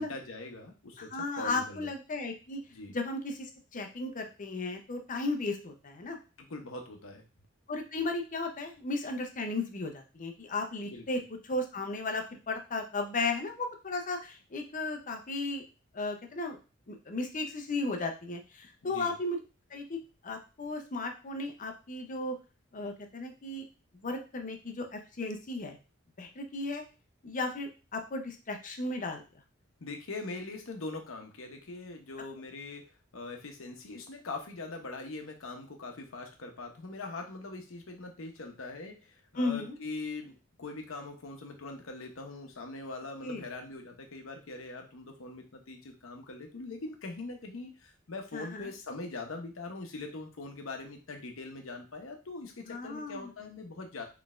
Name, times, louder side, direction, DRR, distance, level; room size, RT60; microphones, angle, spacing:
voice 1, 0.0-1.9 2.7-2.9 6.4-7.2 10.8-11.0 18.8-19.1 29.8-54.0, left 3 dB, 75° left, 3 dB, 0.8 m, -42 dB
voice 2, 1.0-2.6 2.9-6.2 7.7-15.6 15.9-16.6 16.9-19.4 19.7-22.4 22.7-23.7 24.0-25.8 26.2-26.8 27.2-29.2 39.4-39.8 43.2-43.4 48.3-48.7 52.7-53.3, left 2 dB, 40° left, 4 dB, 0.6 m, -35 dB
4.0 x 3.3 x 2.5 m, 0.32 s
head